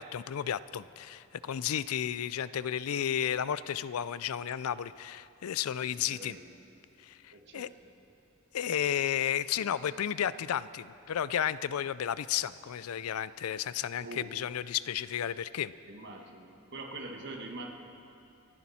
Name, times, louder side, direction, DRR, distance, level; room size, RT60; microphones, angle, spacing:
voice 1, 0.0-6.4 7.0-7.7 8.5-15.7, left 9 dB, 85° left, 17 dB, 0.4 m, -33 dB
voice 2, 5.9-6.5 7.3-7.7 14.0-14.4 15.8-17.7, right 2 dB, 55° right, 2 dB, 1.6 m, -44 dB
28.5 x 10.5 x 4.3 m, 2.8 s
head